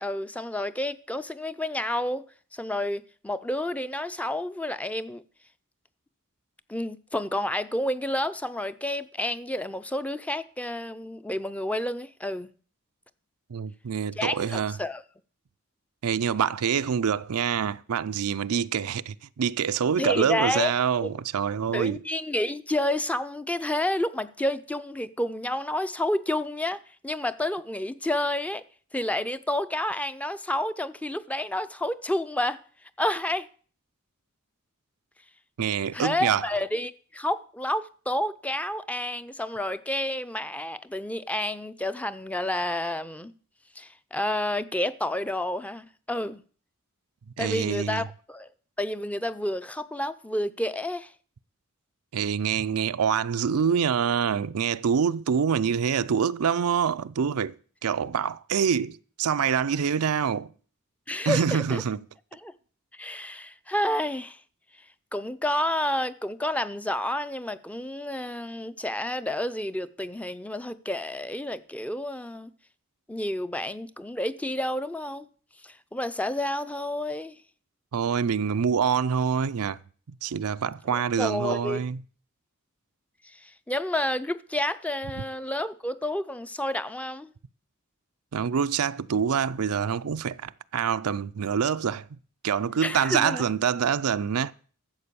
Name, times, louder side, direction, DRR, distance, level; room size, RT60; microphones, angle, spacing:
voice 1, 0.0-2.2 2.5-5.2 6.7-12.5 14.2-15.0 20.0-20.7 21.0-21.1 21.7-26.8 27.0-28.6 28.9-32.6 33.0-33.5 35.9-43.3 43.8-46.4 47.4-48.5 48.8-51.1 61.1-61.8 62.3-62.5 62.9-64.4 65.1-72.5 73.1-75.3 75.6-77.4 80.9-81.8 83.3-87.3 92.8-93.4, left 1 dB, 5° left, 0.5 m, -30 dB
voice 2, 13.5-14.8 16.0-22.0 35.6-36.4 47.4-48.0 52.1-57.5 57.8-60.5 61.3-62.0 77.9-79.8 80.1-82.0 88.3-92.0 92.4-94.5, right 7 dB, 90° right, 0.5 m, -26 dB
13.0 x 7.6 x 6.8 m
head